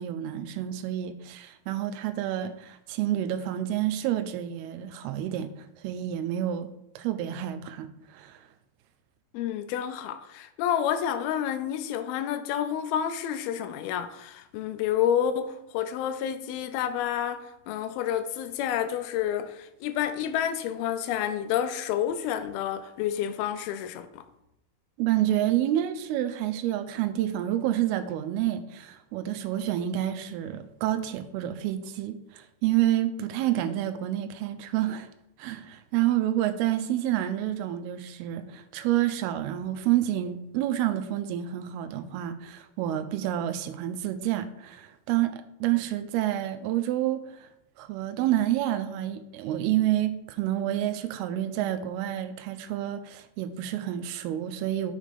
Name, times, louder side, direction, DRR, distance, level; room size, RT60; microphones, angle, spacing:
voice 1, 0.0-6.7 7.0-8.4 25.0-35.1 35.4-47.5 47.8-54.9, right 12 dB, 85° right, 2.5 m, -29 dB
voice 2, 9.3-24.2, left 9 dB, 85° left, 2.4 m, -29 dB
6.4 x 5.0 x 5.2 m
omnidirectional pair, 4.4 m